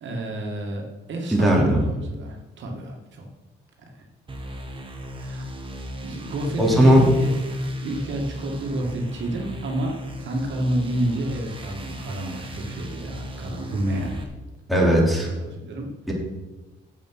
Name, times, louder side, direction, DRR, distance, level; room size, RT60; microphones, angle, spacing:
voice 1, 0.0-3.3 5.2-5.5 6.0-7.3 7.8-14.2 15.2-15.9, right 1 dB, 70° right, 1 dB, 2.1 m, -29 dB
voice 2, 1.3-1.8 6.6-7.1 14.7-15.3 16.1-16.2, equal, ahead, -3 dB, 3.0 m, -17 dB
sound 1, 4.3-14.2, equal, 25° right, 1.9 m, -37 dB
7.7 x 7.6 x 6.2 m, 1.1 s
cardioid pair, 90°, 20 cm